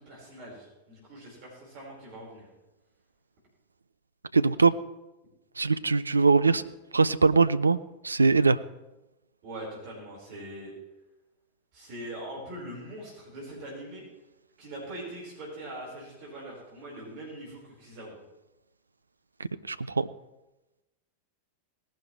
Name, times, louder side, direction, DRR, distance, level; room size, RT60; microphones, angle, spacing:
voice 1, 0.0-2.5 9.4-10.7 11.7-14.1 14.6-18.2, right 1 dB, 45° right, -4 dB, 4.9 m, -42 dB
voice 2, 4.3-4.8 5.6-6.6 6.9-7.8 8.0-8.6 19.7-20.1, right 4 dB, 80° right, 15 dB, 0.4 m, -22 dB
18.5 x 11.5 x 3.3 m, 0.99 s
figure-of-eight pair, 90°, 0 cm